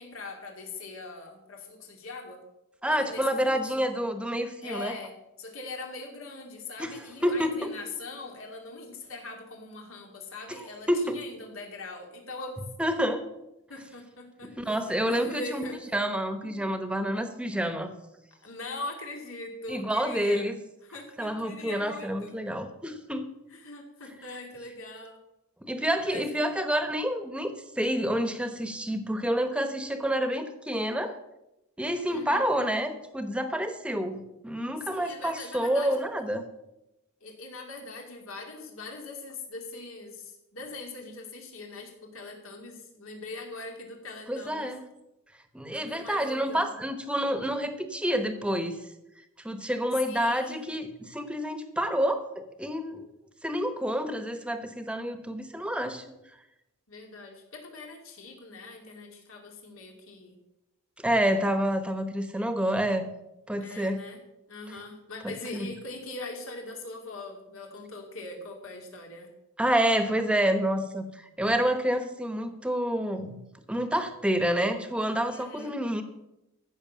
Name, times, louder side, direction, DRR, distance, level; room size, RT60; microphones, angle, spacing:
voice 1, 0.0-2.4 2.9-3.7 4.6-5.1 5.4-12.6 13.7-15.9 16.4-16.5 18.4-20.5 20.8-22.3 23.5-25.2 26.1-26.2 32.1-32.4 34.9-36.0 37.2-44.7 45.7-46.7 50.0-50.7 56.9-60.4 63.6-64.2 64.5-69.3 75.3-75.8, left 2 dB, 80° left, 1 dB, 2.7 m, -41 dB
voice 2, 2.8-4.9 6.8-7.7 10.9-11.2 12.8-13.2 14.6-15.6 15.9-17.9 19.7-20.5 21.2-23.3 25.6-31.2 31.8-36.4 44.3-44.8 45.5-48.8 49.4-53.0 53.4-56.0 61.0-63.1 63.5-64.0 65.5-65.7 69.6-73.4 73.7-76.0, equal, 5° right, 8 dB, 1.0 m, -28 dB
15.0 x 6.4 x 6.2 m, 0.89 s
head